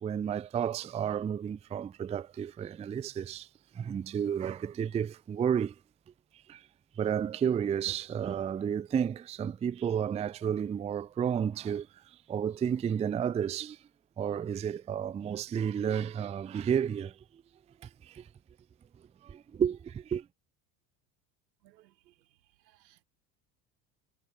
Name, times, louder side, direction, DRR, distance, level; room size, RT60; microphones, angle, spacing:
voice 1, 0.0-3.5 3.7-5.7 6.5-6.7 7.0-13.8 14.2-17.4 17.8-18.3 19.2-20.3, right 8 dB, 15° right, 0.3 m, -32 dB
voice 2, 21.6-22.1 22.7-23.0, right 15 dB, 85° right, 1.4 m, -63 dB
hypercardioid pair, 75°, 50 cm